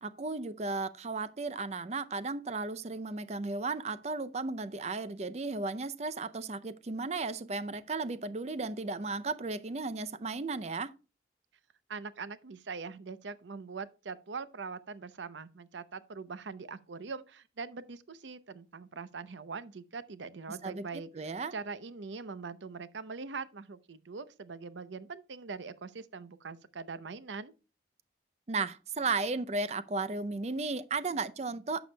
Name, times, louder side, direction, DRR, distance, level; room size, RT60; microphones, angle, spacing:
voice 1, 0.0-10.9 20.6-20.9 21.1-21.5 28.5-31.8, right 3 dB, 35° right, 0.5 m, -35 dB
voice 2, 11.9-27.5, right 4 dB, 90° right, 0.7 m, -42 dB
11.0 x 7.0 x 2.2 m
head